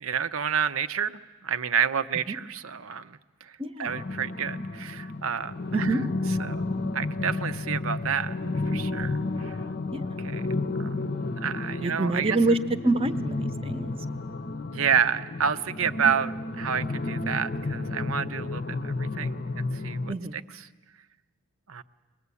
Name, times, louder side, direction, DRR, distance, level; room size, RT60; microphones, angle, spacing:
voice 1, 0.0-3.5 3.8-5.9 6.4-6.6 6.9-8.3 8.7-9.6 10.2-10.4 10.8-11.1 11.4-12.4 14.7-20.1 21.7-21.8, right 7 dB, 65° right, 12 dB, 0.7 m, -29 dB
voice 2, 3.6-3.9 5.7-6.0 9.9-10.2 11.8-12.6 12.8-13.9 20.1-20.4, right 2 dB, 25° right, 10 dB, 0.9 m, -26 dB
sound 1, 3.9-20.1, left 2 dB, 45° left, 0.7 m, -32 dB
23.0 x 20.5 x 8.4 m, 1.3 s
head